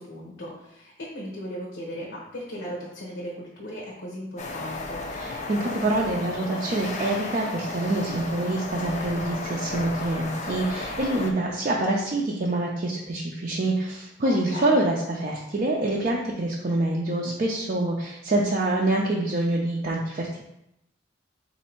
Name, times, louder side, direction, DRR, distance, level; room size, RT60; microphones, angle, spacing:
voice 1, 0.0-5.0 14.2-14.8, equal, 80° left, -4 dB, 0.9 m, -37 dB
sound 1, 4.4-11.3, left 2 dB, 40° left, 0.5 m, -34 dB
voice 2, 5.1-20.4, right 2 dB, 40° right, -3 dB, 0.5 m, -26 dB
4.1 x 2.7 x 4.4 m, 0.83 s
head